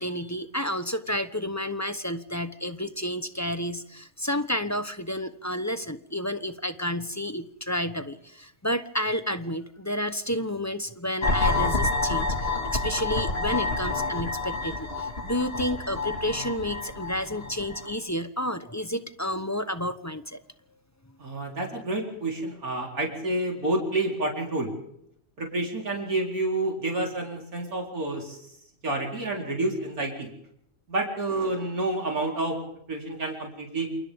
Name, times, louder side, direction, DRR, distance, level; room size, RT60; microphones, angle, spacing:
voice 1, 0.0-20.4, equal, 15° left, 10 dB, 1.0 m, -30 dB
sound 1, 11.2-17.9, left 3 dB, 45° left, 2.6 m, -28 dB
voice 2, 21.2-24.7 25.4-28.4 28.8-30.3 30.9-32.6 32.9-33.9, right 2 dB, 85° right, 0 dB, 4.7 m, -29 dB
28.5 x 28.5 x 3.7 m, 0.73 s
omnidirectional pair, 1.5 m